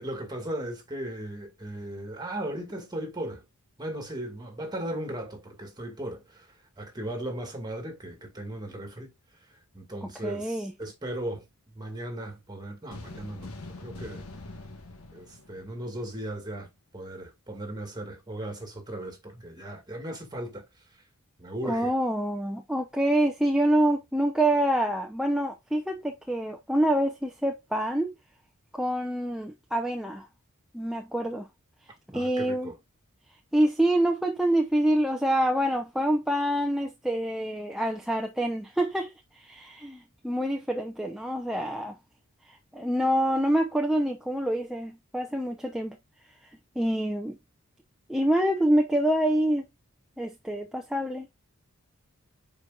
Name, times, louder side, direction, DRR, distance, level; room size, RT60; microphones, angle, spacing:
voice 1, 0.0-3.4 3.8-6.5 6.8-9.1 9.7-11.5 11.8-14.2 15.1-16.7 16.9-20.7 21.4-21.9 32.1-32.8, right 1 dB, 20° right, 2.1 m, -37 dB
voice 2, 10.2-10.7 21.6-28.1 28.7-30.3 30.7-31.5 32.1-32.7 33.5-42.0 42.4-46.0 46.8-47.4 48.1-49.7 50.2-51.3, right 1 dB, ahead, 0.7 m, -26 dB
sound 1, 12.9-16.3, left 2 dB, 70° left, 1.4 m, -44 dB
10.0 x 4.6 x 2.4 m
head